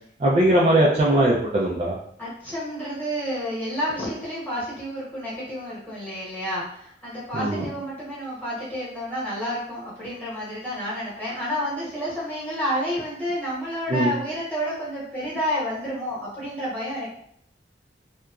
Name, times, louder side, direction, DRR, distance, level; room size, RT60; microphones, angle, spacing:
voice 1, 0.2-2.0 7.3-7.6 13.9-14.1, right 1 dB, 35° right, -5 dB, 0.4 m, -20 dB
voice 2, 2.2-17.1, equal, 10° left, -9 dB, 1.1 m, -30 dB
2.8 x 2.3 x 2.3 m, 0.69 s
head